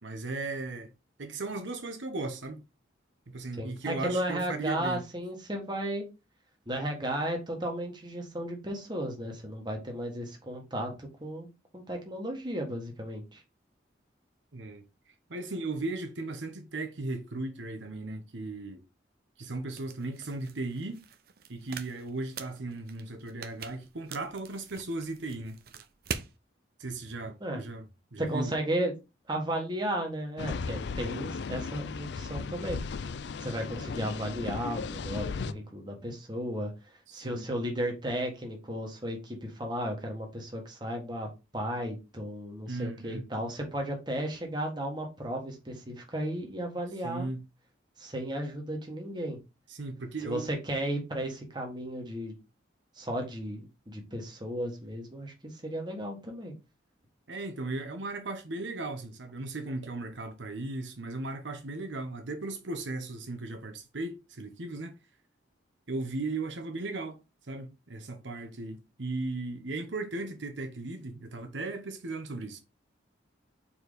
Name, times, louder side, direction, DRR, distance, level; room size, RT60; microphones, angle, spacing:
voice 1, 0.0-0.9 1.2-2.6 3.3-5.0 14.5-14.8 15.3-18.8 19.4-21.0 21.5-25.6 26.8-27.8 28.1-28.5 37.1-37.5 42.7-43.2 47.0-47.4 49.7-50.5 57.3-65.0 65.9-67.2 67.5-72.6, right 2 dB, 75° right, 1.0 m, -36 dB
voice 2, 3.6-6.1 6.7-11.5 11.7-13.4 27.4-27.6 28.2-28.9 29.3-32.8 33.4-36.7 37.1-41.3 41.5-47.3 48.0-49.4 50.2-52.4 53.0-56.5, right 1 dB, 25° right, 1.6 m, -34 dB
sound 1, 19.7-26.3, right 6 dB, 55° right, 0.6 m, -44 dB
sound 2, 30.4-35.5, left 5 dB, 65° left, 0.4 m, -36 dB
4.7 x 4.3 x 5.0 m
head